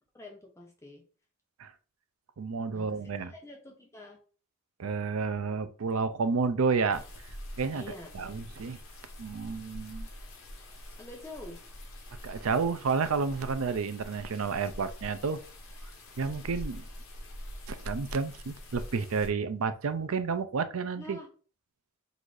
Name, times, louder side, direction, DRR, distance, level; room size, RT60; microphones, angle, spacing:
voice 1, 0.1-1.1 2.7-4.2 7.7-8.3 11.0-11.6 21.0-21.3, left 1 dB, 15° left, 0.6 m, -47 dB
voice 2, 2.4-3.3 4.8-7.0 7.6-8.8 9.2-10.1 12.2-15.4 16.2-16.9 17.7-21.2, right 5 dB, 85° right, 0.5 m, -30 dB
sound 1, 6.9-19.3, equal, 80° left, 1.1 m, -44 dB
4.0 x 2.6 x 4.7 m
head